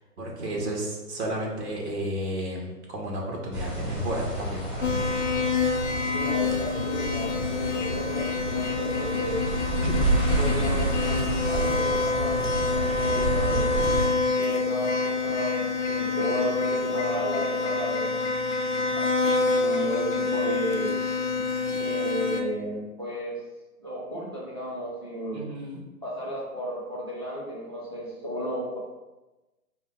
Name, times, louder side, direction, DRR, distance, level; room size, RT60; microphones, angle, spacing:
voice 1, 0.2-5.1 9.8-9.9 25.3-25.8, equal, 45° right, -2 dB, 1.0 m, -32 dB
sound 1, 3.5-14.1, right 2 dB, 5° left, 1.3 m, -29 dB
sound 2, 4.8-22.4, left 4 dB, 50° left, 0.6 m, -27 dB
voice 2, 6.1-9.4 10.4-13.6 14.4-18.1 18.9-20.9 21.8-23.4 23.8-25.4 26.0-28.8, equal, 20° right, -6 dB, 0.4 m, -33 dB
4.8 x 2.2 x 3.7 m, 1.1 s
figure-of-eight pair, 130°, 46 cm